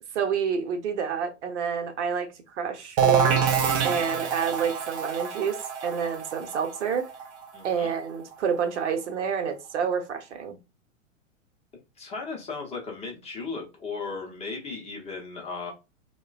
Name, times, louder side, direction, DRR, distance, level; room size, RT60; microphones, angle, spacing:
voice 1, 0.1-7.0 7.6-10.6, right 7 dB, 65° right, 0.8 m, -29 dB
sound 1, 3.0-8.6, right 7 dB, 30° right, 0.4 m, -26 dB
voice 2, 7.5-7.9 12.0-15.7, left 4 dB, 15° left, 0.6 m, -36 dB
3.0 x 2.1 x 2.3 m
figure-of-eight pair, 105°, 38 cm